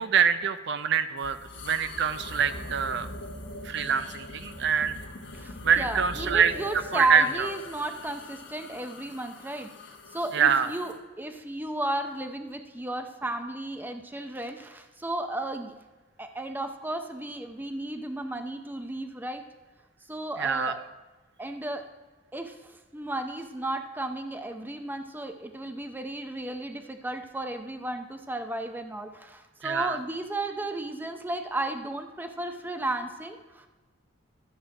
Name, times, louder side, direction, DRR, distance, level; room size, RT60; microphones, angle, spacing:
voice 1, 0.0-1.4 1.6-3.1 3.6-5.0 5.6-7.5 10.3-10.7 20.4-20.7 29.6-30.0, right 7 dB, 60° right, 11 dB, 0.6 m, -25 dB
sound 1, 1.2-11.0, left 1 dB, 65° left, 1.4 m, -42 dB
voice 2, 5.3-15.7 16.2-19.5 20.1-20.9 21.4-21.9 22.3-33.7, right 1 dB, 10° right, 6 dB, 0.6 m, -34 dB
12.5 x 7.4 x 4.8 m, 1.2 s
head